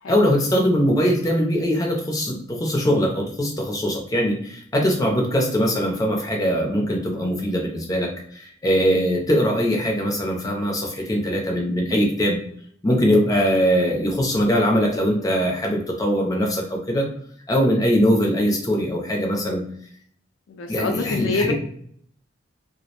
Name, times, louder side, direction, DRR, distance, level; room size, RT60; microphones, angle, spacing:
voice 1, 0.1-12.4 12.8-17.1 17.5-19.6 20.7-21.5, equal, 20° left, 0 dB, 0.4 m, -21 dB
voice 2, 20.5-21.5, left 4 dB, 85° left, 3 dB, 0.4 m, -26 dB
2.4 x 2.0 x 2.8 m, 0.63 s
head